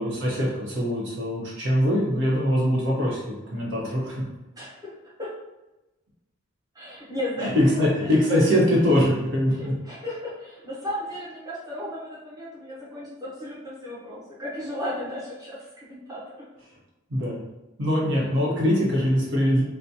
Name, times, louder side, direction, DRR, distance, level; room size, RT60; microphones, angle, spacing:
voice 1, 0.0-4.2 7.4-9.7 17.1-17.4 17.8-19.6, equal, 60° right, -4 dB, 1.1 m, -22 dB
voice 2, 4.6-4.9 5.2-5.3 6.7-7.5 7.8-8.1 9.5-16.2, left 1 dB, 15° right, -8 dB, 0.7 m, -35 dB
4.0 x 2.2 x 2.8 m, 1.0 s
head